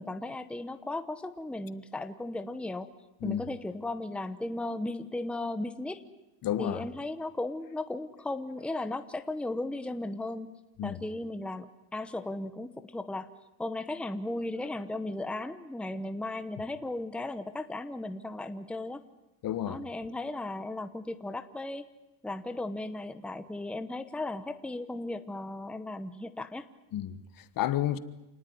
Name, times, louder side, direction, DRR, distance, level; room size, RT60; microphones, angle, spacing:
voice 1, 0.0-2.9 3.2-6.0 6.6-10.5 10.8-11.7 11.9-13.3 13.6-19.0 19.7-21.9 22.2-26.7, left 2 dB, 5° left, 1.0 m, -36 dB
voice 2, 6.4-6.9 10.8-11.0 19.4-19.8 26.9-28.0, left 12 dB, 50° left, 1.4 m, -31 dB
28.5 x 19.5 x 9.8 m
cardioid pair, 145°, 43 cm